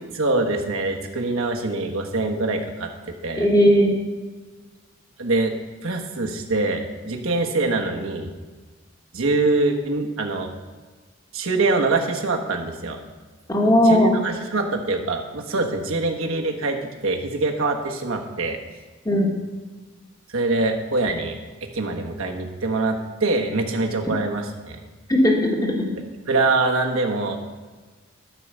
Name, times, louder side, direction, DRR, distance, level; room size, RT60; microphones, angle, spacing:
voice 1, 0.0-2.9 3.2-3.5 5.2-5.5 5.8-8.3 9.1-10.5 11.3-13.0 13.8-18.6 20.3-24.8 26.3-27.4, right 3 dB, 75° right, 2 dB, 1.3 m, -24 dB
voice 2, 3.4-3.9 13.5-14.2 19.0-19.3 24.0-24.1 25.1-25.9, equal, 15° left, 0 dB, 1.3 m, -17 dB
13.5 x 4.7 x 6.6 m, 1.4 s
head